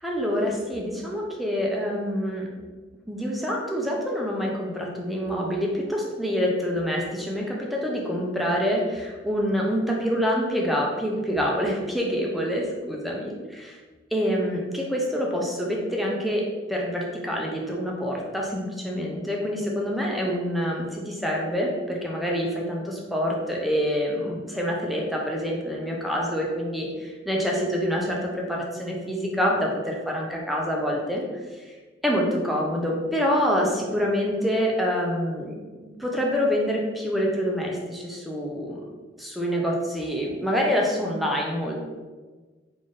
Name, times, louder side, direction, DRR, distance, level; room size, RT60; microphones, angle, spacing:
voice 1, 0.0-2.5 3.1-13.7 14.1-31.2 31.5-31.7 32.0-35.5 36.0-38.8 39.2-41.8, equal, ahead, -2 dB, 0.5 m, -26 dB
3.5 x 2.6 x 3.7 m, 1.3 s
head